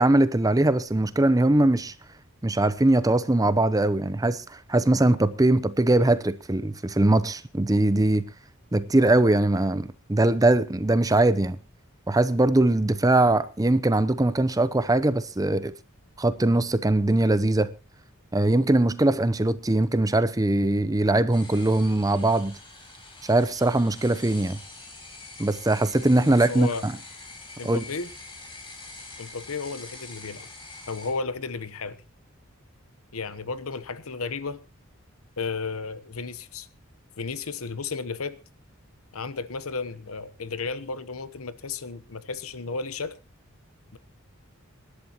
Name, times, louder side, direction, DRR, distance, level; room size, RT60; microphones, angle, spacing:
voice 1, 0.0-1.9 2.4-8.3 8.7-11.6 12.1-15.7 16.2-17.7 18.3-22.6 23.2-24.6 25.4-26.9 27.6-27.8, right 2 dB, 15° right, 0.7 m, -21 dB
sound 1, 21.3-31.1, left 3 dB, 25° left, 4.7 m, -44 dB
voice 2, 26.3-26.9 27.6-28.1 29.2-30.5 30.9-32.0 33.1-34.6 35.4-36.7 37.2-38.4 39.1-43.2 43.9-44.0, left 4 dB, 80° left, 1.0 m, -33 dB
26.0 x 11.5 x 3.0 m
head